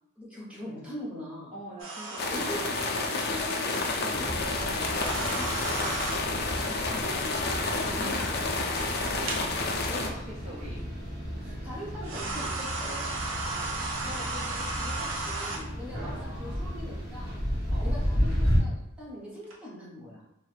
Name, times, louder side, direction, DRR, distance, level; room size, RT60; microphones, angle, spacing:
voice 1, 0.2-1.5 2.3-2.8 3.1-6.0 6.6-8.9 9.9-10.2 11.4-13.2 14.0-17.4 17.8-20.2, left 1 dB, 5° right, -6 dB, 0.9 m, -42 dB
voice 2, 1.5-2.5 4.2-4.4 6.2-6.6 9.0-9.4 9.8-10.8 13.3-14.4 16.0-16.8 17.7-18.0, equal, 30° right, -6 dB, 0.5 m, -45 dB
sound 1, 1.8-2.3 4.9-6.2 8.8-8.9 9.3-9.4 10.8-10.9 12.0-15.6 19.4-19.5, right 3 dB, 70° right, 0.7 m, -34 dB
sound 2, 2.2-10.1, left 3 dB, 50° left, 0.4 m, -30 dB
sound 3, 4.1-18.6, equal, 50° right, 1.3 m, -33 dB
3.0 x 2.5 x 3.2 m, 0.83 s
head